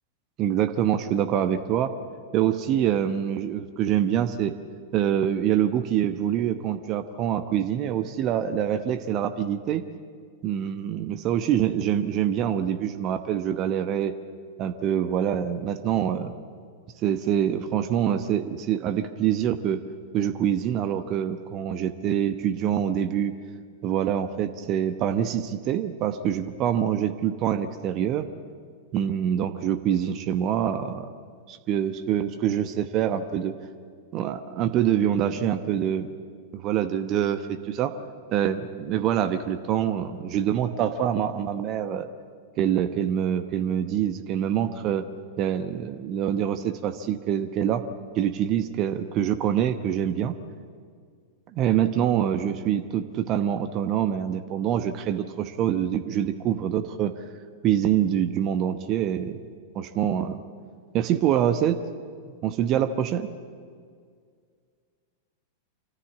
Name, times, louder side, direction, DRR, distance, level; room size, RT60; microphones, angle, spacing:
voice 1, 0.4-1.9 2.3-4.5 4.9-9.8 10.4-14.1 14.6-16.3 17.0-19.8 20.1-23.3 23.8-28.3 28.9-31.1 31.5-33.5 34.1-36.1 36.5-37.9 38.3-42.1 42.6-45.1 45.4-47.8 48.1-50.3 51.5-57.1 57.6-59.4 59.7-60.4 60.9-61.8 62.4-63.3, right 10 dB, 35° right, 10 dB, 1.0 m, -25 dB
26.0 x 14.5 x 8.6 m, 2.1 s
figure-of-eight pair, 95°, 0 cm